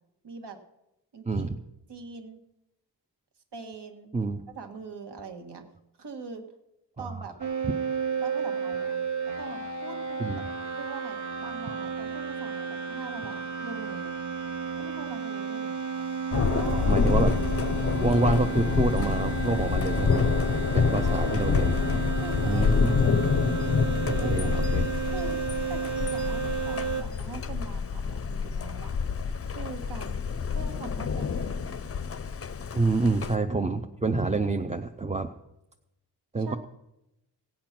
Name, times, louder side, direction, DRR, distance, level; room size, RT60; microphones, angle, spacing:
voice 1, 0.2-0.6 1.1-1.5 1.9-2.4 3.5-4.1 4.6-5.6 6.0-6.4 7.0-7.3 8.2-9.0 9.4-10.4 10.7-14.1 14.8-15.8 16.3-16.9 21.0-21.4 22.2-23.0 24.1-24.7 25.1-25.4 25.7-29.0 29.4-31.8 36.4-36.6, right 4 dB, 75° right, 6 dB, 1.8 m, -42 dB
voice 2, 1.3-1.6 4.1-4.4 7.0-7.2 7.6-7.7 10.2-10.4 16.7-17.4 18.0-20.3 20.7-21.8 22.5-22.9 24.1-24.9 32.7-35.3 36.3-36.6, right 3 dB, 15° right, 6 dB, 0.5 m, -27 dB
sound 1, 7.4-27.0, right 5 dB, 45° right, 1.2 m, -32 dB
Thunder, 16.3-33.4, left 5 dB, 35° left, 0.5 m, -27 dB
16.5 x 8.8 x 5.9 m, 0.89 s
wide cardioid pair, 175°, 41 cm